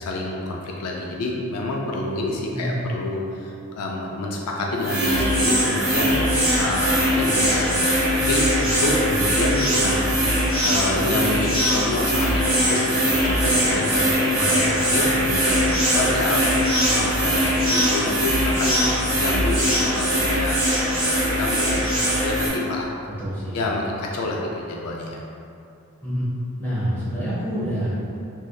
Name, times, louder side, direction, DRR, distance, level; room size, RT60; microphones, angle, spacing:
voice 1, 0.0-6.2 6.6-10.0 10.6-20.6 21.0-22.9 23.5-25.2, left 2 dB, 90° left, -1 dB, 0.4 m, -28 dB
voice 2, 2.5-2.8 14.3-14.5 23.2-23.6 26.0-26.3 26.6-27.9, equal, 10° left, -10 dB, 0.8 m, -27 dB
sound 1, 4.8-22.5, equal, 40° right, 1.1 m, -21 dB
3.2 x 2.6 x 2.3 m, 2.6 s
head